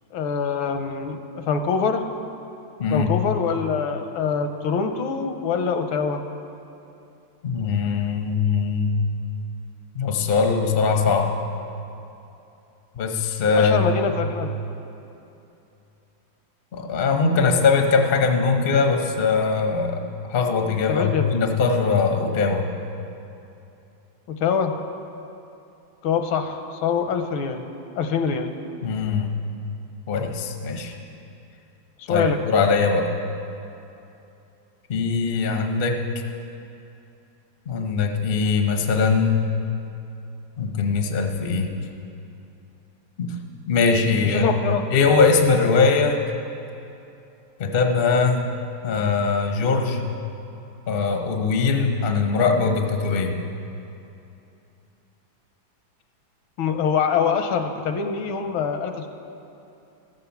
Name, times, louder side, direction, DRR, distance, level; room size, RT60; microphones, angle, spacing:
voice 1, 0.1-2.0 2.9-6.2 13.6-14.5 20.9-21.3 24.3-24.7 26.0-27.6 27.9-28.5 32.0-32.4 44.2-44.8 56.6-59.1, left 6 dB, 80° left, 7 dB, 1.5 m, -24 dB
voice 2, 2.8-3.1 7.4-9.0 9.9-11.3 13.0-14.1 16.7-22.6 28.8-29.3 30.1-30.9 32.1-33.1 34.9-36.0 37.7-39.5 40.6-41.8 43.2-43.3 43.7-46.2 47.6-48.4 48.8-50.0 50.9-53.3, left 4 dB, 50° left, 4 dB, 0.6 m, -21 dB
13.5 x 6.9 x 7.0 m, 2.8 s
omnidirectional pair, 2.2 m